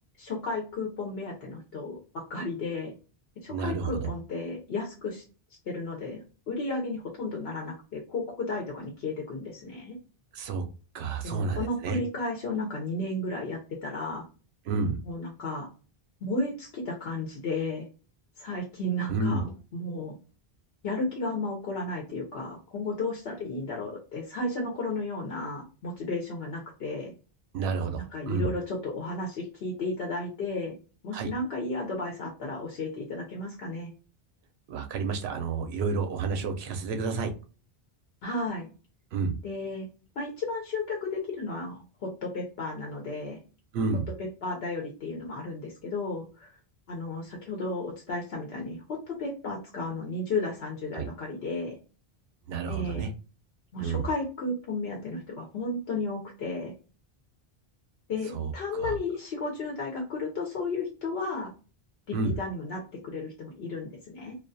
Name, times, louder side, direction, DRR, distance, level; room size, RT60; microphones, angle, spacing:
voice 1, 0.2-2.9 3.4-5.2 5.7-10.0 11.2-14.3 15.0-15.7 16.2-17.9 18.4-20.2 20.8-27.1 28.1-30.8 31.0-33.9 38.2-38.7 39.4-39.9 40.2-43.4 44.2-46.5 46.9-51.8 52.7-53.1 53.7-56.7 58.1-61.5 62.4-64.3, left 2 dB, 75° left, 0.9 m, -33 dB
voice 2, 3.5-4.1 10.3-10.6 10.9-12.0 14.7-15.0 19.1-19.4 27.5-28.5 31.1-31.3 34.7-37.3 39.1-39.3 43.7-44.1 50.9-51.1 52.5-53.1 53.8-54.0 58.3-58.9 62.1-62.3, right 4 dB, 85° right, 0.8 m, -30 dB
2.4 x 2.2 x 2.5 m
omnidirectional pair, 1.0 m